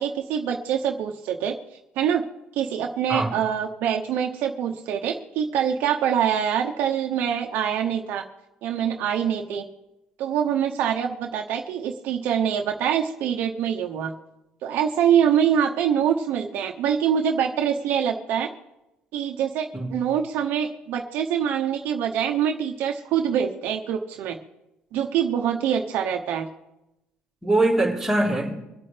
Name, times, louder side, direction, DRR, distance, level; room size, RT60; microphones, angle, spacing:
voice 1, 0.0-1.5 2.0-2.2 2.5-8.2 8.6-9.6 10.2-14.1 14.6-18.5 19.1-24.4 24.9-26.5, right 8 dB, 75° right, 3 dB, 1.0 m, -24 dB
voice 2, 27.4-28.6, right 2 dB, 5° right, -4 dB, 3.8 m, -22 dB
25.0 x 8.6 x 3.4 m, 0.94 s
cardioid pair, 125°, 3 cm